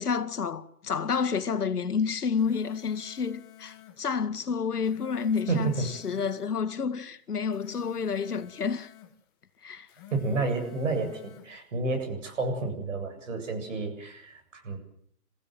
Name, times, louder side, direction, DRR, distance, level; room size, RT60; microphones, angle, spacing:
voice 1, 0.0-8.9 9.6-9.9, left 6 dB, 75° left, 2.1 m, -29 dB
sound 1, 2.2-4.0 4.7-6.5 7.3-9.1 9.8-11.5, left 10 dB, 15° left, 1.2 m, -50 dB
voice 2, 5.5-5.9 10.1-14.8, right 3 dB, 55° right, 7.8 m, -30 dB
29.0 x 15.5 x 9.1 m
hypercardioid pair, 165°, 46 cm